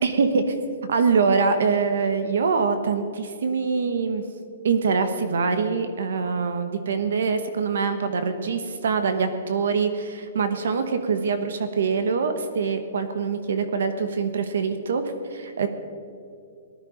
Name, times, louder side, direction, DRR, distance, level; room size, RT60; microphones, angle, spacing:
voice 1, 0.0-0.5 0.9-4.2 4.6-15.7, right 5 dB, 65° right, 9 dB, 1.3 m, -24 dB
18.5 x 13.5 x 5.2 m, 2.5 s
hypercardioid pair, 180°, 0 cm